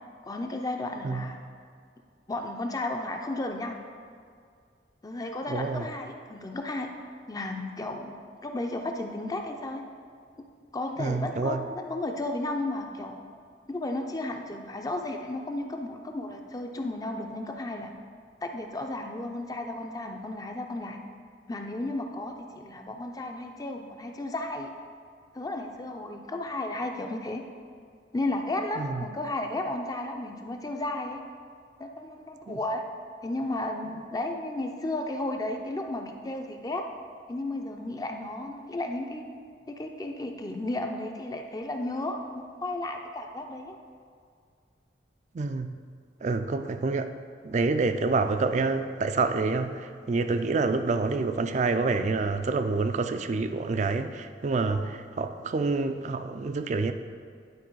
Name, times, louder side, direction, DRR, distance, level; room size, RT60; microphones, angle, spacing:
voice 1, 0.2-1.4 2.3-3.8 5.0-6.9 7.3-9.8 10.7-13.2 13.7-17.9 18.4-21.0 21.5-24.7 25.3-27.4 28.1-31.2 31.8-32.8 33.2-36.8 37.3-39.2 39.7-42.2 42.6-43.8 54.6-54.9, left 2 dB, 20° left, 3 dB, 0.5 m, -33 dB
voice 2, 5.5-5.8 11.0-11.6 28.8-29.0 32.5-32.6 45.3-45.8 46.2-47.1 47.4-56.9, right 3 dB, 40° right, 9 dB, 0.4 m, -27 dB
10.5 x 4.1 x 4.6 m, 2.2 s
head